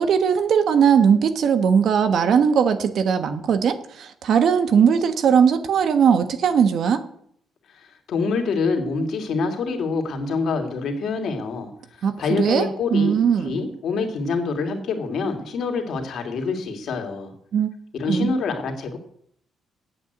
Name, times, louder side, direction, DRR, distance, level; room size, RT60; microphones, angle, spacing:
voice 1, 0.0-7.0 12.0-13.6 17.5-17.7 18.1-18.3, right 7 dB, 65° right, 10 dB, 1.2 m, -19 dB
voice 2, 7.7-17.3 17.9-19.0, left 4 dB, 65° left, 3 dB, 2.6 m, -26 dB
8.7 x 7.9 x 8.1 m, 0.67 s
cardioid pair, 90°, 0 cm